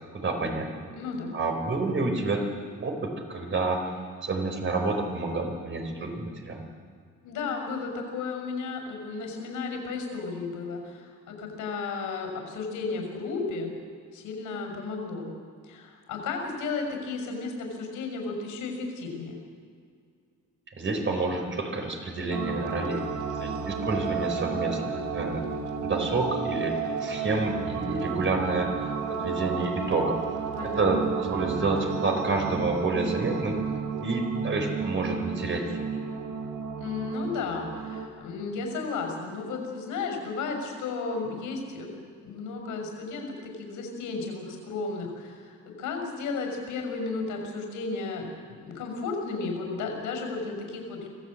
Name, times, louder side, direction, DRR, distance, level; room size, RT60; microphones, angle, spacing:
voice 1, 0.1-0.7 1.3-2.4 2.8-3.8 4.2-6.6 20.8-23.1 23.4-25.4 25.8-28.8 29.1-30.2 30.6-33.5 34.0-35.9, right 3 dB, 40° right, 4 dB, 4.8 m, -29 dB
voice 2, 0.9-1.4 7.2-13.7 14.1-15.3 15.6-19.4 30.5-31.0 36.8-51.1, left 4 dB, 85° left, 1 dB, 6.1 m, -34 dB
sound 1, 22.3-38.1, right 6 dB, 85° right, 1.7 m, -32 dB
25.0 x 15.5 x 8.7 m, 2.1 s
cardioid pair, 90°, 30 cm